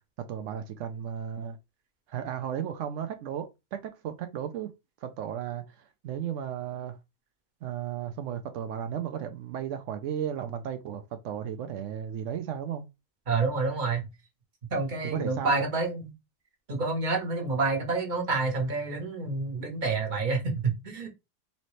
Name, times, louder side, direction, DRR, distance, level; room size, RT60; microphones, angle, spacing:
voice 1, 0.2-1.6 2.1-4.7 5.0-7.0 7.6-12.9 15.0-15.7, right 9 dB, 85° right, 0.6 m, -34 dB
voice 2, 13.3-14.1 14.7-16.1 16.7-21.1, right 3 dB, 30° right, 1.2 m, -28 dB
4.1 x 3.0 x 3.1 m
omnidirectional pair, 1.8 m